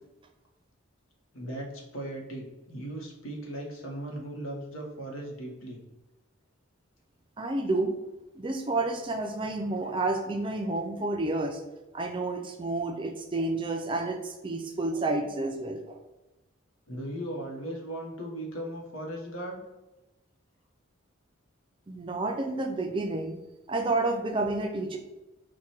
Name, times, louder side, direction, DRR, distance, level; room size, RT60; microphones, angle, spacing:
voice 1, 1.3-5.8 16.9-19.6, right 1 dB, 80° left, 0 dB, 1.1 m, -37 dB
voice 2, 7.4-7.9 8.4-11.6 11.9-16.0 21.9-23.4 23.7-25.0, right 2 dB, 25° right, 4 dB, 0.4 m, -30 dB
4.7 x 2.2 x 4.3 m, 1.0 s
head